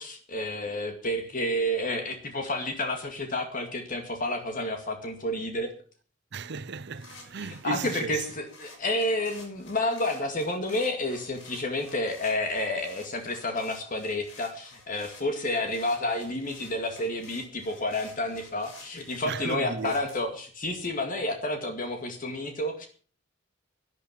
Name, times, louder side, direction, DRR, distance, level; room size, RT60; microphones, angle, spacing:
voice 1, 0.0-5.7 7.6-22.9, left 1 dB, 45° left, 2.2 m, -30 dB
voice 2, 6.3-8.3 19.3-20.0, right 4 dB, 60° right, 0.7 m, -35 dB
sound 1, 7.0-20.2, left 3 dB, 80° left, 6.8 m, -51 dB
12.0 x 11.5 x 7.4 m
head